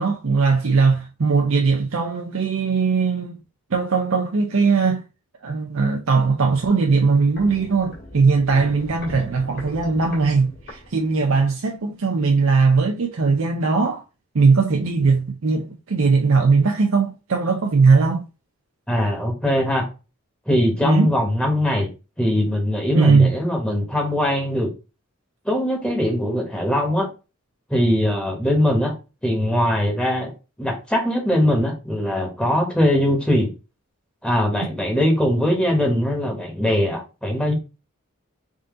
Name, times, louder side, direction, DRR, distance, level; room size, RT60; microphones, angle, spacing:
voice 1, 0.0-3.4 3.7-5.0 5.4-14.0 14.3-18.2 20.8-21.1 22.9-23.3, right 4 dB, 65° right, 0.6 m, -19 dB
Walk footsteps, 7.1-11.5 11.8-11.9, left 1 dB, 50° left, 1.8 m, -40 dB
voice 2, 18.9-19.9 20.5-21.9 22.2-24.7 25.4-27.1 27.7-28.9 29.2-30.3 30.6-33.5 34.2-37.5, left 1 dB, 5° left, 1.1 m, -21 dB
3.7 x 2.7 x 3.7 m
head